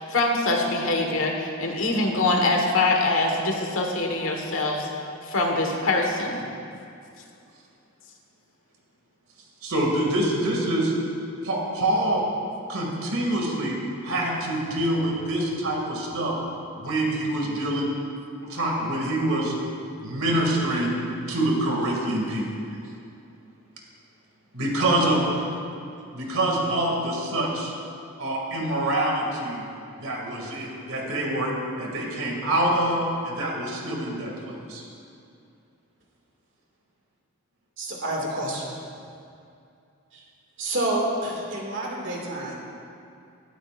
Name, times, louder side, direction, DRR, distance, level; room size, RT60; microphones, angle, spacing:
voice 1, 0.0-4.9 5.2-6.4, left 2 dB, 65° left, 1 dB, 1.6 m, -24 dB
voice 2, 9.6-10.9 11.4-12.3 12.7-16.4 16.8-18.0 18.4-19.6 20.0-21.0 21.3-22.5 24.5-25.3 26.1-27.7 28.2-29.7 30.0-34.8, right 1 dB, 75° right, -1 dB, 2.5 m, -25 dB
voice 3, 37.8-38.8 40.1-40.2 40.6-42.6, right 1 dB, 55° right, -2 dB, 2.4 m, -28 dB
17.5 x 13.0 x 2.6 m, 2.5 s
head